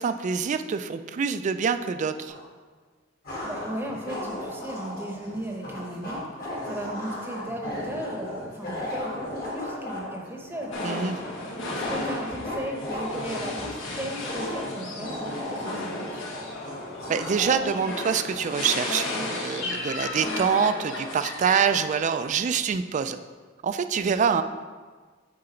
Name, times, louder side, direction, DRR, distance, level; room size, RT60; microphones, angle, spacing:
voice 1, 0.0-2.3 10.8-11.2 17.1-23.2 23.6-24.4, right 6 dB, 40° right, 11 dB, 0.3 m, -25 dB
sound 1, 2.3-2.4 3.2-18.6, left 1 dB, 50° left, 1.6 m, -35 dB
voice 2, 3.4-6.2 6.7-11.1 11.6-16.3, right 1 dB, 10° right, 1 dB, 0.8 m, -36 dB
sound 2, 10.7-21.7, left 2 dB, 80° left, 1.2 m, -34 dB
7.6 x 3.9 x 4.4 m, 1.5 s
head